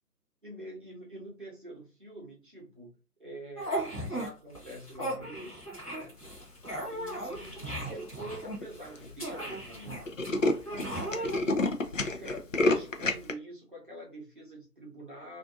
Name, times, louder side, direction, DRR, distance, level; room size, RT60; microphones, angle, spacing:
voice 1, 0.4-5.6 5.9-6.2 6.6-11.7 12.0-15.4, right 1 dB, 35° right, -3 dB, 0.7 m, -46 dB
sound 1, 3.6-4.3 4.5-11.4, right 1 dB, 20° left, 1.0 m, -37 dB
Tools, 7.3-7.7 8.3-8.4 8.6-8.7 9.0-9.2 9.5-9.6 9.8-13.3, left 2 dB, 55° left, 0.5 m, -29 dB
2.5 x 2.4 x 2.5 m, 0.33 s
figure-of-eight pair, 150°, 49 cm